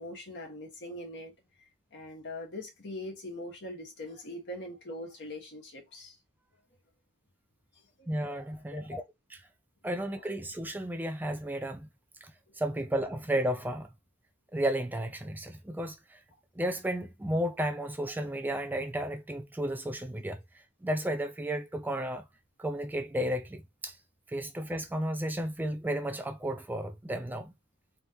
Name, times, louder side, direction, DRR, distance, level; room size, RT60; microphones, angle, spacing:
voice 1, 0.0-1.3 1.9-6.2 8.0-8.1 8.7-9.0 9.9-10.1 12.5-12.6, left 1 dB, 55° left, 1.5 m, -42 dB
voice 2, 8.1-9.0 9.8-11.9 12.2-12.3 12.6-13.9 14.5-16.2 16.6-20.4 20.8-22.2 22.6-24.0 24.3-27.5, right 1 dB, 10° right, 0.4 m, -33 dB
3.8 x 3.4 x 2.9 m
head